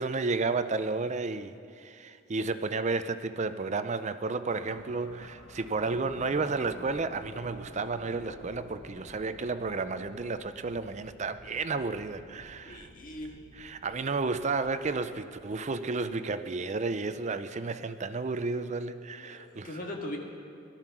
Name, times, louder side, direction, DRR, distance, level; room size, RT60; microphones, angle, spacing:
voice 1, 0.0-12.9 13.6-19.7, right 3 dB, 35° right, 11 dB, 0.5 m, -32 dB
sound 1, 4.6-17.2, left 1 dB, 65° left, 1.2 m, -52 dB
voice 2, 12.6-13.4 19.2-20.2, left 1 dB, 40° left, 1 dB, 1.9 m, -40 dB
18.0 x 12.5 x 6.0 m, 2.5 s
head